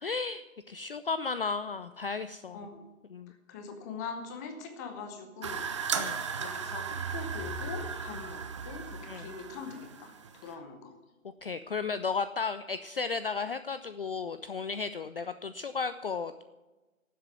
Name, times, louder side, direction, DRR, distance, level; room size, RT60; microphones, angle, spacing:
voice 1, 0.0-2.7 3.1-3.3 6.0-6.2 9.1-9.3 11.2-16.4, left 4 dB, 45° left, 12 dB, 0.5 m, -34 dB
voice 2, 3.3-5.7 6.3-10.1 10.4-11.0, left 5 dB, 15° left, 6 dB, 0.9 m, -42 dB
sound 1, 5.4-10.5, right 5 dB, 20° right, 0.7 m, -36 dB
12.0 x 7.6 x 8.8 m, 1.1 s
figure-of-eight pair, 140°, 41 cm